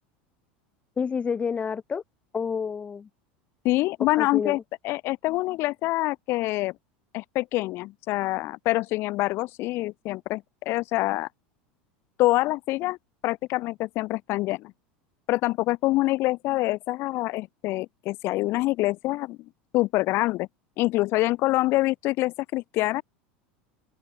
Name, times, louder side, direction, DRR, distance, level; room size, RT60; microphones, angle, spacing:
voice 1, 1.0-2.0 2.3-3.1 4.1-4.6, left 6 dB, 25° left, 1.5 m, -29 dB
voice 2, 3.6-6.7 7.1-11.3 12.2-13.0 13.2-14.7 15.3-19.4 19.7-20.5 20.8-23.0, left 19 dB, 55° left, 0.7 m, -25 dB
open air
supercardioid pair, 105°, 5 cm